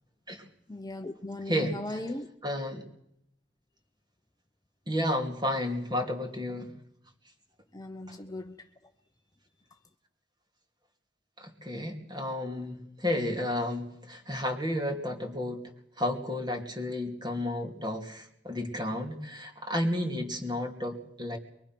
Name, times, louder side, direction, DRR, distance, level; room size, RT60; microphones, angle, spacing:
voice 1, 0.7-2.3 7.7-8.6, left 1 dB, 20° left, 0.8 m, -38 dB
voice 2, 1.5-2.0 2.4-2.8 4.9-6.7 8.1-8.2 11.4-15.6 16.0-21.4, left 1 dB, 25° right, 2.8 m, -32 dB
23.0 x 22.0 x 6.1 m
head